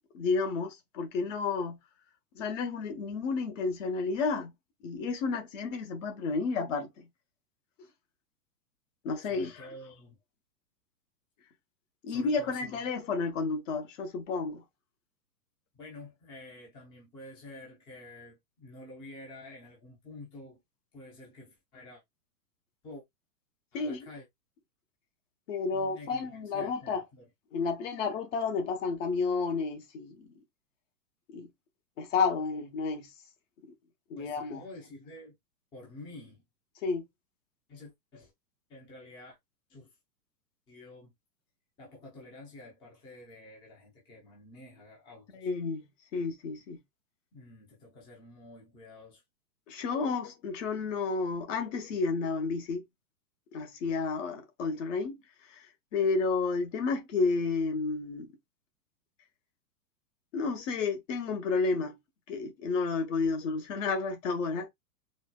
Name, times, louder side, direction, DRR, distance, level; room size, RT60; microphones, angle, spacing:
voice 1, 0.1-1.8 2.3-4.5 4.8-7.1 9.0-9.7 12.0-14.6 23.7-24.1 25.5-27.0 27.5-30.3 31.3-31.5 32.0-33.1 34.1-34.6 36.8-37.0 45.3-45.8 46.1-46.8 49.7-52.8 53.5-55.2 55.5-55.6 55.9-58.3 60.3-62.0 62.3-64.7, left 4 dB, 45° left, 1.1 m, -31 dB
voice 2, 9.2-10.2 12.1-12.8 15.7-20.6 20.9-22.0 22.8-23.0 23.7-24.3 25.7-27.3 34.1-35.4 35.7-36.4 37.7-38.3 38.7-39.4 39.7-39.9 40.7-41.1 41.8-45.5 47.3-49.2, left 2 dB, 10° left, 0.6 m, -49 dB
4.3 x 2.2 x 2.2 m
hypercardioid pair, 145°, 50 cm